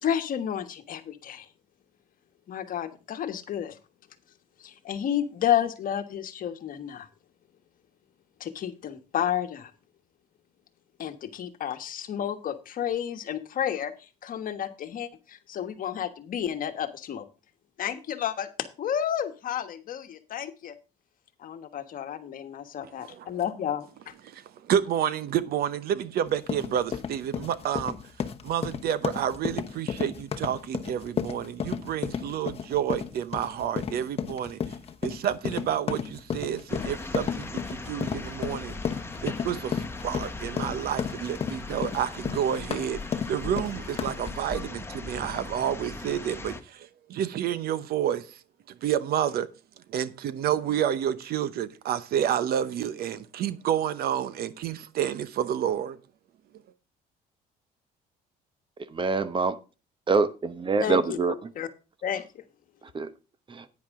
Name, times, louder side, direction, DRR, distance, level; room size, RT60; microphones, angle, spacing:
voice 1, 0.0-1.5 2.5-3.8 4.6-7.1 8.4-9.7 11.0-17.2 17.8-18.5 18.8-20.7 21.4-24.1 60.8-61.7 62.0-62.4, left 9 dB, 55° left, 1.3 m, -31 dB
voice 2, 24.7-28.0 28.4-34.6 35.0-38.8 39.2-43.0 43.3-48.2 48.8-49.5 49.9-56.0, right 10 dB, 65° right, 0.9 m, -29 dB
sound 1, 26.3-44.3, left 7 dB, 35° left, 1.0 m, -33 dB
sound 2, 36.7-46.6, left 3 dB, 15° left, 1.2 m, -39 dB
voice 3, 58.9-59.6 60.1-61.3 62.9-63.1 63.5-63.6, right 4 dB, 30° right, 0.9 m, -25 dB
10.5 x 9.6 x 3.7 m
cardioid pair, 110°, 17 cm